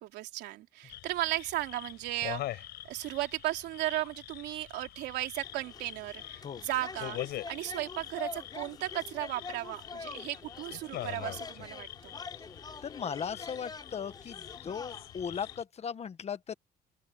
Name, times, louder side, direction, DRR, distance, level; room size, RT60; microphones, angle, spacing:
voice 1, 0.0-12.2, right 16 dB, 90° right, 3.4 m, -36 dB
sound 1, 0.9-15.6, left 14 dB, 75° left, 6.6 m, -44 dB
sound 2, 5.4-15.6, left 4 dB, 25° left, 7.4 m, -46 dB
voice 2, 12.8-16.5, left 7 dB, 40° left, 1.5 m, -37 dB
open air
cardioid pair, 110°, 17 cm